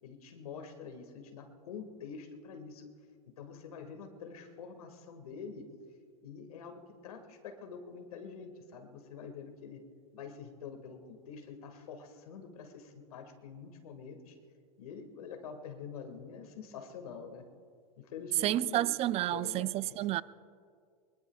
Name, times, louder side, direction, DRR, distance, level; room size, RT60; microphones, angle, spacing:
voice 1, 0.0-2.9 3.4-5.7 6.2-9.8 10.1-14.4 14.8-17.4 18.0-19.0 19.3-20.1, left 6 dB, 85° left, 2.0 m, -46 dB
voice 2, 18.4-20.2, right 14 dB, 35° right, 0.4 m, -30 dB
22.5 x 21.5 x 2.4 m
hypercardioid pair, 110°, 18 cm